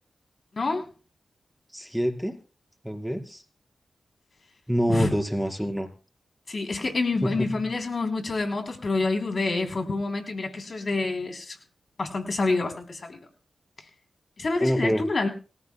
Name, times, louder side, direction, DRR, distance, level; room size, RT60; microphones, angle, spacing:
voice 1, 0.5-0.9 4.9-5.1 6.5-11.6 12.0-13.2 14.4-15.3, left 3 dB, 55° left, 5 dB, 3.2 m, -27 dB
voice 2, 1.7-2.4 2.8-3.4 4.7-5.9 7.2-7.6 14.6-15.0, equal, ahead, 3 dB, 4.4 m, -26 dB
25.0 x 14.0 x 2.2 m, 0.35 s
cardioid pair, 50°, 0 cm